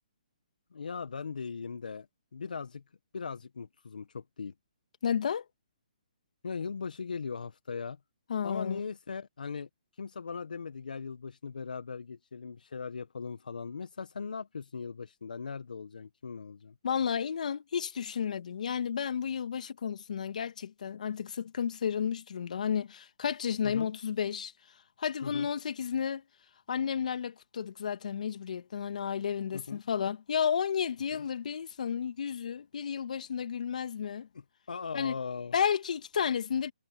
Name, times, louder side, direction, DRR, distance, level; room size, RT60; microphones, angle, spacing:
voice 1, 0.7-2.1 2.3-2.8 3.1-4.5 6.4-8.0 8.4-16.7 23.6-23.9 25.2-25.5 29.5-29.8 31.1-31.2 34.3-35.5, left 5 dB, 75° left, 1.4 m, -39 dB
voice 2, 5.0-5.5 8.3-8.8 16.8-26.2 26.7-34.3 34.9-35.1 35.5-36.7, left 7 dB, 60° left, 2.0 m, -32 dB
hypercardioid pair, 145°, 4 cm